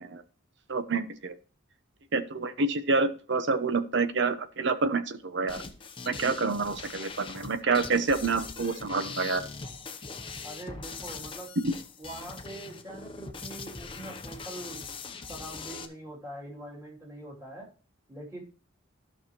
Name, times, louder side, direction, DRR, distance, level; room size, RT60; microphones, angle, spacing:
voice 1, 0.7-1.3 2.1-5.6 6.1-9.4 11.6-11.7, right 3 dB, 55° right, 11 dB, 0.8 m, -28 dB
sound 1, 5.5-15.8, left 4 dB, 25° left, 0.7 m, -41 dB
voice 2, 10.4-11.6 12.0-14.8 15.3-17.7 18.1-18.4, right 1 dB, 15° right, -4 dB, 2.9 m, -43 dB
13.0 x 6.1 x 3.0 m, 0.39 s
head